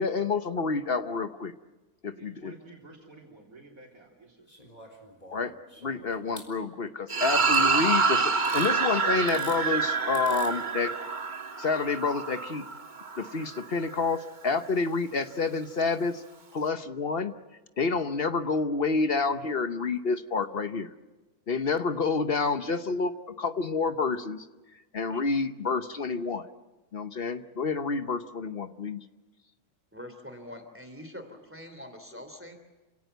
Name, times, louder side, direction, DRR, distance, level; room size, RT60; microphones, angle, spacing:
voice 1, 0.0-1.5 2.0-2.5 5.3-5.5 5.8-10.9 11.6-12.6 13.2-16.2 16.5-17.3 17.8-20.9 21.5-24.5 24.9-26.5 26.9-29.0, left 4 dB, 45° left, 10 dB, 1.0 m, -28 dB
voice 2, 2.1-4.5, right 2 dB, 65° right, -1 dB, 3.9 m, -51 dB
sound 1, 4.5-6.5 7.5-7.7 8.4-8.7 9.2-9.6 10.1-10.5 11.8-11.9, left 1 dB, 25° left, 4.1 m, -47 dB
sound 2, 7.1-13.6, right 4 dB, 35° right, 1.4 m, -27 dB
voice 3, 29.9-32.6, left 1 dB, 10° right, 7 dB, 3.0 m, -44 dB
28.5 x 17.5 x 8.0 m, 1.2 s
omnidirectional pair, 1.6 m